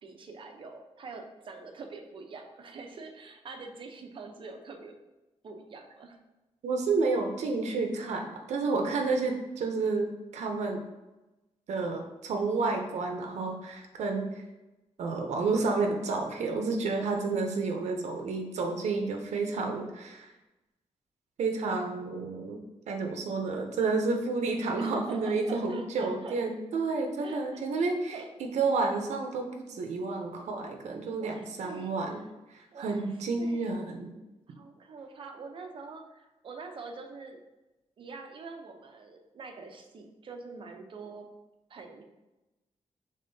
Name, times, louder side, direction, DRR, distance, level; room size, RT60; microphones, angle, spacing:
voice 1, 0.0-4.9 5.4-6.2 24.8-26.4 27.2-27.6 28.1-28.2 31.2-32.2 32.7-33.0 33.4-33.6 34.5-37.4 38.0-41.3 41.7-42.0, right 4 dB, 50° right, 3 dB, 0.6 m, -44 dB
voice 2, 6.6-10.8 11.7-14.4 15.0-20.3 21.4-22.6 22.9-32.2 32.5-34.1, right 3 dB, 90° right, 3 dB, 0.6 m, -30 dB
5.5 x 3.6 x 2.6 m, 1.0 s
wide cardioid pair, 160°, 11 cm